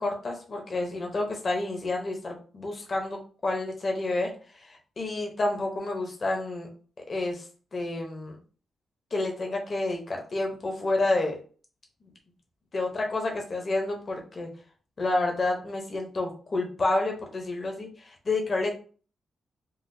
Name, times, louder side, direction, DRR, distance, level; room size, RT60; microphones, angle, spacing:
voice 1, 0.0-6.7 7.1-7.4 7.7-8.3 9.1-11.4 12.7-14.5 15.0-18.8, left 2 dB, 35° left, 1 dB, 0.7 m, -29 dB
3.8 x 2.3 x 2.6 m, 0.39 s
wide cardioid pair, 135°, 0 cm